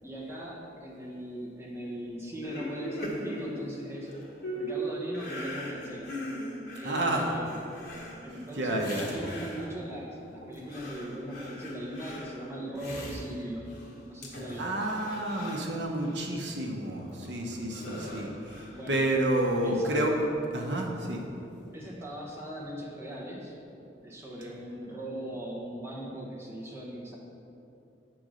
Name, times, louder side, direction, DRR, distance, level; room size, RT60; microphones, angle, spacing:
voice 1, 0.0-4.1 4.5-6.1 6.8-7.6 8.2-13.6 14.0-14.8 18.7-19.0 19.6-20.1 21.7-23.6 24.0-27.2, right 1 dB, 15° right, -4 dB, 1.1 m, -39 dB
sound 1, 2.4-9.9 10.4-13.9 14.2-16.3 16.8-18.9, equal, 55° left, 1.2 m, -40 dB
voice 2, 6.8-7.3 8.6-9.1 14.6-20.1 20.5-21.2 24.5-24.6, right 1 dB, 70° right, 0 dB, 0.8 m, -30 dB
7.8 x 3.8 x 6.3 m, 2.7 s
head